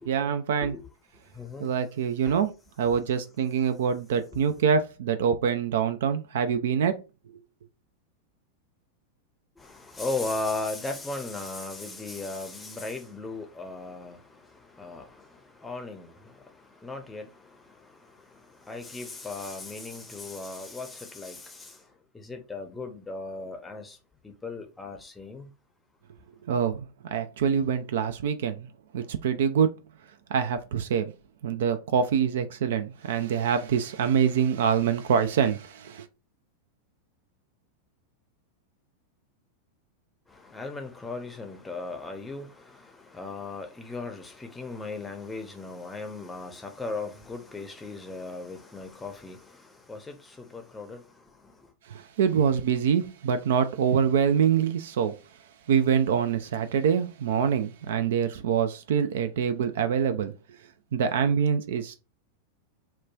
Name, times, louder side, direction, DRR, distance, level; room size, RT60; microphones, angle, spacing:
voice 1, 0.1-0.7 1.6-2.5 2.8-7.0 26.5-28.7 28.9-29.7 30.3-31.1 31.4-36.0 51.9-55.1 55.7-60.3 60.9-62.0, right 7 dB, 60° right, 0.4 m, -25 dB
voice 2, 1.4-1.7 2.2-2.4 9.6-14.2 14.8-15.1 15.6-16.1 16.8-17.3 18.7-21.7 22.1-24.0 24.2-25.5 40.5-42.5 42.8-49.4 49.9-51.0, left 3 dB, 10° left, 0.6 m, -36 dB
3.0 x 2.2 x 2.3 m
figure-of-eight pair, 90°, 0 cm